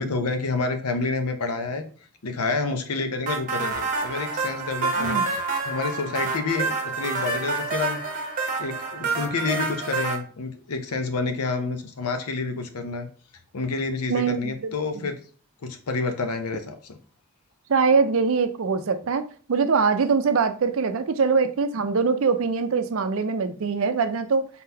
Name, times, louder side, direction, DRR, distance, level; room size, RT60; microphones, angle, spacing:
voice 1, 0.0-1.8 2.2-5.2 5.6-8.0 8.6-13.1 13.5-15.2 15.6-17.0, left 3 dB, 85° left, 7 dB, 0.7 m, -28 dB
sound 1, 3.3-10.2, right 4 dB, 35° right, 0.8 m, -28 dB
voice 2, 5.0-5.3 14.1-14.7 17.7-19.2 19.5-24.5, right 5 dB, 60° right, 10 dB, 0.4 m, -23 dB
4.0 x 3.8 x 2.8 m, 0.42 s
head